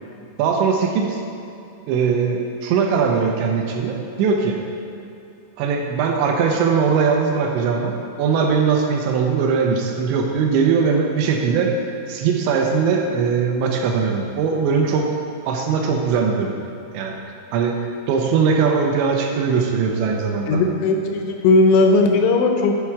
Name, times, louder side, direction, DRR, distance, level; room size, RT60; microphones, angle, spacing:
voice 1, 0.4-1.2 1.9-4.6 5.6-11.7 12.1-15.1 15.5-16.6 16.9-17.2 17.5-17.8 18.1-20.6, right 5 dB, 80° right, 2 dB, 2.8 m, -20 dB
voice 2, 20.5-22.8, left 3 dB, 85° left, 3 dB, 3.1 m, -17 dB
10.5 x 4.4 x 4.8 m, 2.7 s
omnidirectional pair, 5.3 m